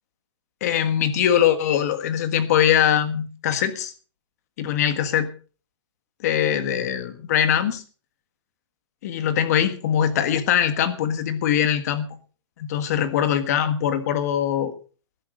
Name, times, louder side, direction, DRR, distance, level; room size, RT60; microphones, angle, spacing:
voice 1, 0.6-3.9 4.6-5.3 6.2-7.8 9.0-12.1 12.6-14.7, left 9 dB, 30° left, 10 dB, 1.6 m, -22 dB
20.0 x 11.0 x 3.9 m, 0.38 s
hypercardioid pair, 175°, 16 cm